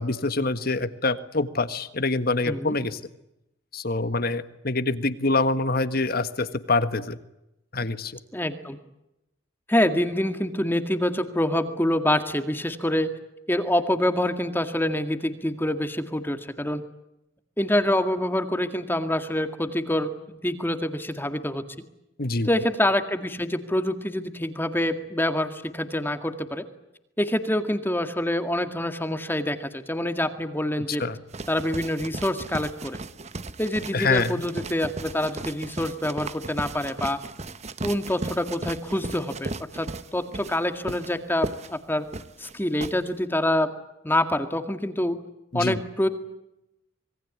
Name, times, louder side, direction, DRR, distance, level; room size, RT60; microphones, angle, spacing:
voice 1, 0.0-3.0 3.7-7.2 7.7-8.2 22.2-22.5 31.0-31.2 33.9-34.4 45.5-45.8, left 3 dB, 50° left, 11 dB, 1.6 m, -25 dB
voice 2, 2.5-2.8 8.3-8.8 9.7-13.1 13.5-16.8 17.6-21.6 22.4-26.7 27.2-31.0 31.5-33.0 33.6-37.2 37.8-42.1 42.4-43.7 44.0-45.2 45.5-46.1, left 1 dB, 10° left, 8 dB, 2.0 m, -26 dB
sound 1, 31.3-43.0, right 2 dB, 35° right, 1.0 m, -36 dB
26.0 x 22.5 x 8.4 m, 0.88 s
head